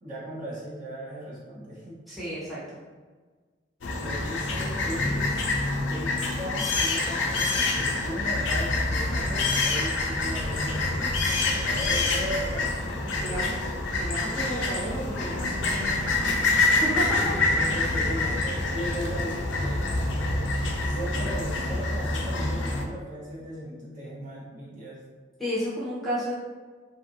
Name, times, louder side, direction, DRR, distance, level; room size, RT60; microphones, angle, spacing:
voice 1, 0.0-2.0 4.0-5.5 5.8-12.8 13.2-13.7 17.5-19.8 20.8-25.0, equal, 45° right, -7 dB, 0.9 m, -37 dB
voice 2, 2.1-2.6 13.1-13.5 13.8-16.3 16.8-16.9 25.4-26.3, equal, ahead, -10 dB, 0.7 m, -33 dB
sound 1, 3.8-22.8, left 2 dB, 75° left, 0.4 m, -26 dB
2.8 x 2.5 x 2.6 m, 1.4 s
head